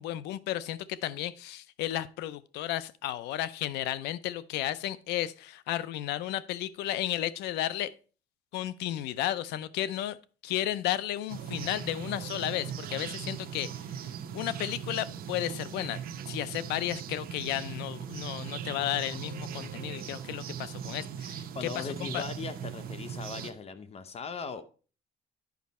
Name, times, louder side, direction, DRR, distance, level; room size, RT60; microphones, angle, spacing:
voice 1, 0.0-7.9 8.5-10.2 10.4-13.7 14.3-16.0 16.3-22.2, left 13 dB, 85° left, 0.5 m, -33 dB
sound 1, 11.3-23.5, right 8 dB, 60° right, 0.8 m, -39 dB
voice 2, 21.5-24.6, left 5 dB, 35° left, 0.7 m, -39 dB
9.4 x 5.2 x 4.2 m
cardioid pair, 110°, 17 cm